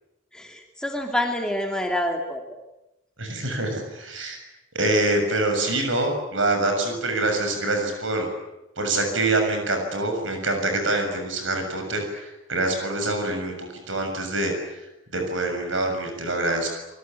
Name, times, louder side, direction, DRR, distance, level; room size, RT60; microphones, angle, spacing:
voice 1, 0.3-2.4, left 1 dB, 5° left, 1 dB, 2.7 m, -27 dB
voice 2, 3.2-4.4 4.8-8.3 8.8-14.8 15.1-16.8, right 2 dB, 70° right, 5 dB, 6.9 m, -25 dB
27.0 x 24.0 x 9.3 m, 0.95 s
head